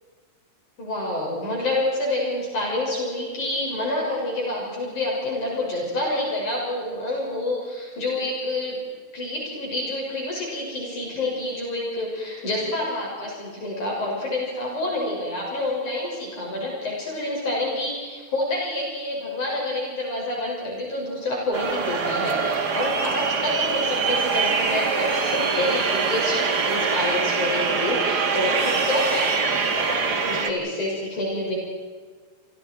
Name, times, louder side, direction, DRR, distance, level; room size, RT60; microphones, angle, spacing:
voice 1, 0.8-8.8 9.1-31.6, left 1 dB, 50° left, -3 dB, 7.9 m, -28 dB
sound 1, 21.5-30.5, right 5 dB, 45° right, 1.4 m, -24 dB
28.5 x 27.5 x 4.7 m, 1.5 s
omnidirectional pair, 4.4 m